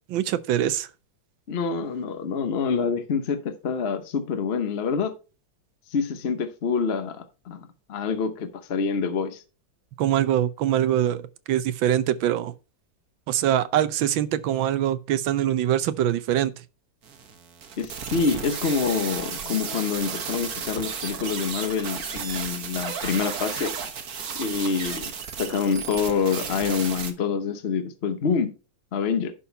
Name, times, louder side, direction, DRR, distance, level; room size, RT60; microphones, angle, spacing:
voice 1, 0.1-0.9 10.0-12.5 13.3-16.5, right 11 dB, 85° right, 1.5 m, -23 dB
voice 2, 1.5-5.1 5.9-9.4 17.8-23.7 24.4-25.1 25.4-28.5 28.9-29.3, left 5 dB, 45° left, 0.9 m, -26 dB
sound 1, 17.0-27.1, right 6 dB, 55° right, 1.6 m, -33 dB
11.0 x 4.3 x 5.4 m
omnidirectional pair, 2.1 m